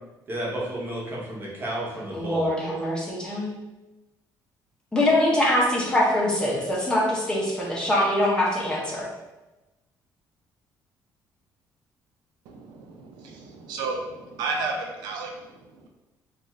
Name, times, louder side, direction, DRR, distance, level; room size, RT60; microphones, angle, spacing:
voice 1, 0.3-2.5, right 1 dB, 30° right, -4 dB, 0.8 m, -32 dB
voice 2, 2.1-3.5 4.9-9.1, left 1 dB, 10° left, -5 dB, 0.6 m, -23 dB
voice 3, 12.5-15.9, right 3 dB, 85° right, 2 dB, 0.4 m, -33 dB
2.5 x 2.3 x 3.0 m, 1.1 s
cardioid pair, 140°, 7 cm